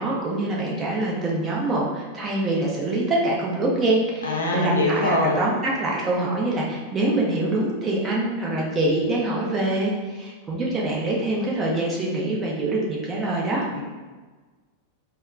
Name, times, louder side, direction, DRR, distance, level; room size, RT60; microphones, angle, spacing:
voice 1, 0.0-13.7, right 2 dB, 25° right, -3 dB, 0.7 m, -24 dB
voice 2, 4.2-5.4 13.7-13.8, left 2 dB, 70° left, -1 dB, 0.6 m, -23 dB
4.0 x 2.0 x 2.5 m, 1.3 s
figure-of-eight pair, 90°, 0 cm